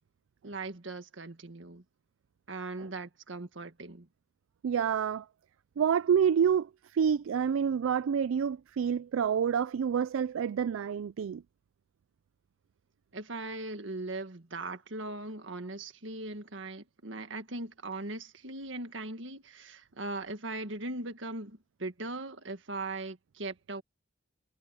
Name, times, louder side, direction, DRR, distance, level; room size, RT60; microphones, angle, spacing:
voice 1, 0.4-1.8 2.5-4.1 13.1-23.8, right 2 dB, 70° right, 1.7 m, -39 dB
voice 2, 4.6-5.2 5.8-11.4, right 7 dB, 85° right, 0.4 m, -28 dB
head